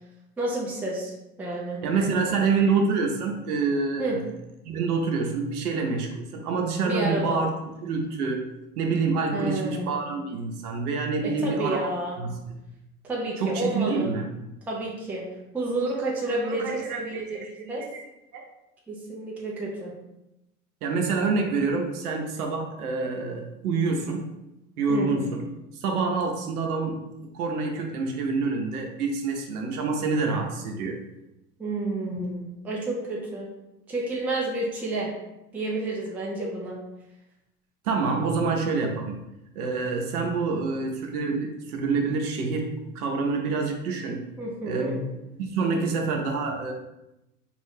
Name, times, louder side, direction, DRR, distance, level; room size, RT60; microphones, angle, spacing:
voice 1, 0.4-1.1 1.4-1.8 4.0-4.2 6.8-7.4 9.3-9.9 11.2-12.2 13.0-14.1 14.7-15.3 15.5-17.8 18.9-19.9 24.9-25.1 31.6-33.5 33.9-35.1 35.5-36.8 44.4-45.0, right 2 dB, 5° right, -3 dB, 0.4 m, -30 dB
voice 2, 1.8-4.2 4.6-7.5 7.8-8.4 8.8-11.9 12.2-12.6 13.4-14.3 16.2-18.0 18.3-18.4 20.8-24.2 24.8-25.4 25.7-27.0 27.3-31.0 37.8-39.2 39.5-44.2 44.6-45.1 45.4-46.7, right 4 dB, 70° right, 2 dB, 0.8 m, -27 dB
2.6 x 2.5 x 3.5 m, 0.92 s
hypercardioid pair, 80°, 47 cm